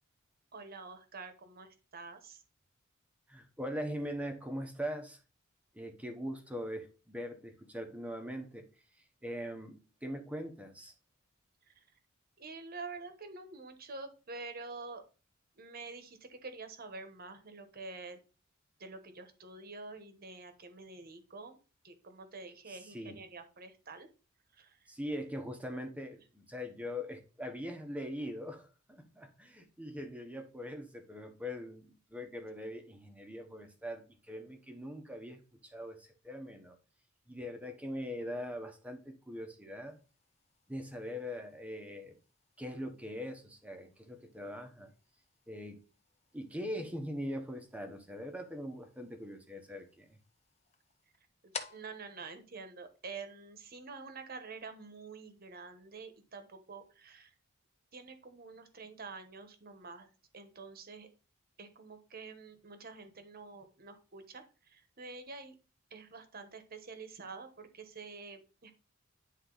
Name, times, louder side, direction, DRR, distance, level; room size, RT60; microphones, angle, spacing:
voice 1, 0.5-2.4 11.6-11.8 12.4-15.0 15.6-18.2 18.8-21.6 21.8-24.1 24.5-24.9 51.7-57.3 57.9-61.1 61.6-65.5 65.9-68.7, right 4 dB, 45° right, 1.1 m, -47 dB
voice 2, 3.3-5.2 5.7-8.7 9.2-10.9 22.7-23.2 24.9-36.8 37.3-40.0 40.7-42.2 42.6-44.9 45.5-45.8 46.3-50.2, equal, 5° right, 1.0 m, -41 dB
sound 1, 39.8-53.5, left 5 dB, 30° left, 0.7 m, -54 dB
9.8 x 3.6 x 3.9 m
head